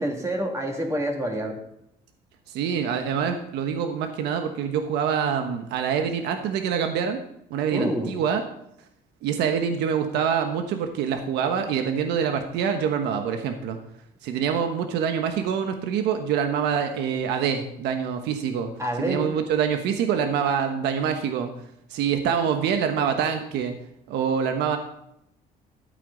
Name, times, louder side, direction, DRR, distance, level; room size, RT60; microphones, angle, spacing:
voice 1, 0.0-1.6 7.7-8.2 18.8-19.3, equal, 15° right, 1 dB, 2.7 m, -27 dB
voice 2, 2.5-7.2 7.5-8.4 9.2-13.8 14.2-18.7 19.1-21.5 21.9-23.7 24.1-24.8, right 7 dB, 85° right, 6 dB, 1.2 m, -25 dB
13.0 x 8.7 x 4.0 m, 0.77 s
cardioid pair, 110°, 17 cm